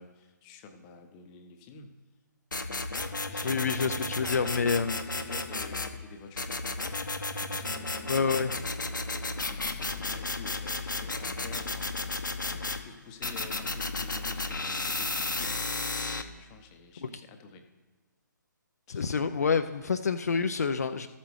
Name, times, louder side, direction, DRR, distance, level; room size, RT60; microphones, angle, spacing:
voice 1, 0.0-2.0 3.3-6.6 7.0-8.2 8.8-15.6 16.2-17.6 18.9-19.4, left 5 dB, 20° left, 6 dB, 0.7 m, -48 dB
sound 1, 2.5-5.9 6.4-12.8 13.2-16.2, left 3 dB, 75° left, 0.9 m, -33 dB
voice 2, 3.4-5.0 8.1-8.5 17.0-17.2 18.9-21.1, left 5 dB, 55° left, 8 dB, 0.4 m, -28 dB
14.0 x 8.1 x 3.1 m, 1.3 s
figure-of-eight pair, 140°, 11 cm